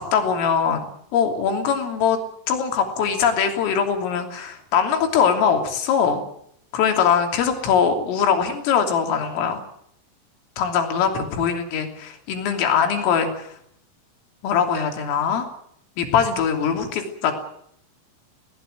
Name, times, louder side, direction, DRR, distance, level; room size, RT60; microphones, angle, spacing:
voice 1, 0.0-2.2 2.5-6.2 6.7-9.6 10.6-13.5 14.4-15.5 16.0-17.3, left 7 dB, 85° left, 5 dB, 5.7 m, -22 dB
20.5 x 18.5 x 9.2 m, 0.70 s
omnidirectional pair, 5.7 m